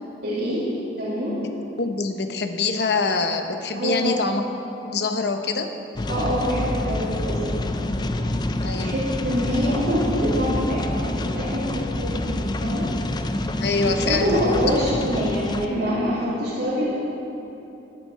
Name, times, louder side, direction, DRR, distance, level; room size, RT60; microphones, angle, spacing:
voice 1, 0.2-0.7 1.0-1.4 3.7-4.1 6.1-8.0 8.8-12.9 14.0-16.9, equal, 65° right, -13 dB, 3.2 m, -25 dB
voice 2, 1.8-4.4 4.8-5.7 8.6-9.0 13.6-14.4, left 4 dB, 65° left, 6 dB, 0.8 m, -24 dB
sound 1, 6.0-15.7, left 1 dB, 25° left, 0.4 m, -27 dB
15.0 x 9.5 x 4.6 m, 2.9 s
head